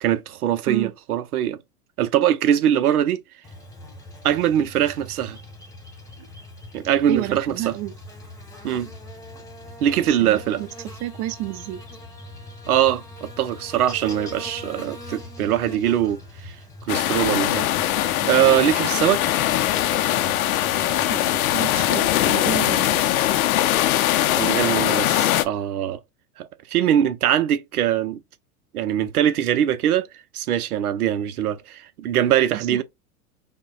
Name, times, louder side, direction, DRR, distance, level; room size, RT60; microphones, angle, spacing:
voice 1, 0.0-1.6 2.0-3.2 4.2-5.4 6.7-7.7 8.6-8.9 9.8-10.6 12.7-16.5 16.9-17.7 18.2-19.2 24.4-26.0 26.4-28.2 28.7-30.1 30.3-32.8, right 10 dB, 85° right, 0.6 m, -22 dB
Buzz, 3.4-23.0, left 1 dB, 10° left, 1.3 m, -41 dB
voice 2, 7.1-7.9 10.0-11.8 21.1-21.2 21.5-23.3 32.5-32.8, right 14 dB, 35° right, 0.4 m, -31 dB
sound 1, 16.9-25.4, left 13 dB, 75° left, 0.6 m, -21 dB
5.1 x 2.2 x 2.3 m
hypercardioid pair, 95°, 43 cm